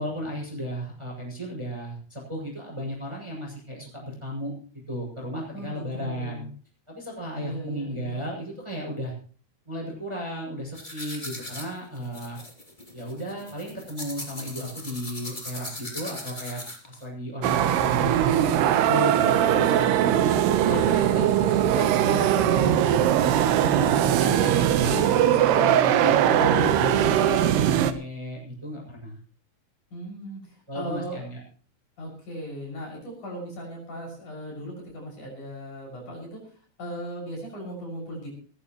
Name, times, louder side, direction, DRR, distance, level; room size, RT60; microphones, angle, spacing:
voice 1, 0.0-4.5 4.9-6.4 6.9-9.1 9.6-12.4 12.9-18.1 18.6-23.2 23.8-29.2 30.7-31.4, equal, 5° right, -1 dB, 6.7 m, -34 dB
voice 2, 5.5-6.5 7.3-8.2 21.1-21.5 23.6-24.6 29.9-31.2 32.0-38.3, equal, 40° left, -1 dB, 7.6 m, -37 dB
sound 1, 10.7-17.0, left 1 dB, 15° left, 2.3 m, -39 dB
sound 2, 17.4-27.9, right 11 dB, 70° right, 2.8 m, -21 dB
20.0 x 15.5 x 3.1 m, 0.42 s
omnidirectional pair, 5.4 m